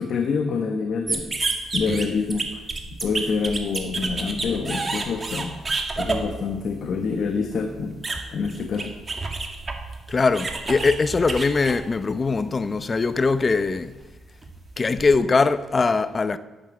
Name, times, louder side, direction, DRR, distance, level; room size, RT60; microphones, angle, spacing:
voice 1, 0.0-2.5 3.0-5.5 6.0-8.0 8.3-8.9, left 5 dB, 60° left, 1.4 m, -26 dB
sound 1, 1.1-12.4 12.8-15.1, right 3 dB, 30° right, 2.1 m, -31 dB
voice 2, 10.1-14.0 14.8-16.4, left 4 dB, 30° left, 0.7 m, -21 dB
11.5 x 9.5 x 8.2 m
cardioid pair, 90°, 0 cm